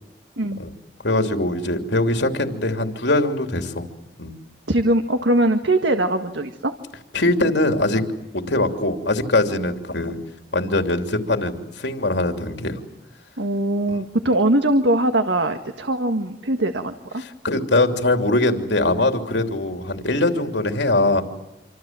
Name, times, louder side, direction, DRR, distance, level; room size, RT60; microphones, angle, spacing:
voice 1, 1.0-3.9 4.2-4.3 7.1-8.0 8.3-10.2 10.5-12.8 13.9-14.0 17.2-21.2, left 2 dB, 80° left, 5 dB, 3.2 m, -22 dB
voice 2, 4.7-6.7 9.5-9.7 13.4-17.2, right 1 dB, 85° right, 7 dB, 1.7 m, -21 dB
27.5 x 26.0 x 7.6 m, 0.95 s
head